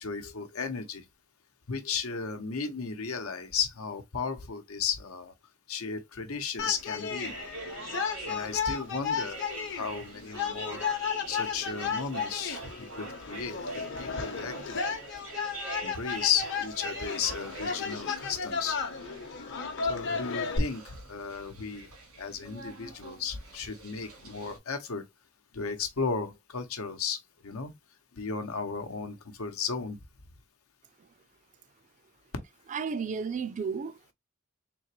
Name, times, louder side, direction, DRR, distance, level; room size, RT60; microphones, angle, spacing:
voice 1, 0.0-1.0 1.7-5.3 5.7-7.3 8.2-9.4 9.7-10.8 11.3-13.6 14.0-15.0 15.8-18.8 19.9-20.8 21.1-21.9 22.2-25.0 25.5-27.2 27.4-27.7 28.2-30.0, left 6 dB, 85° left, 0.9 m, -34 dB
sound 1, 6.6-20.6, left 5 dB, 60° left, 0.8 m, -34 dB
sound 2, 7.1-24.6, right 2 dB, 85° right, 1.7 m, -45 dB
voice 2, 32.7-34.1, right 5 dB, 35° right, 0.3 m, -33 dB
3.8 x 2.9 x 3.0 m
head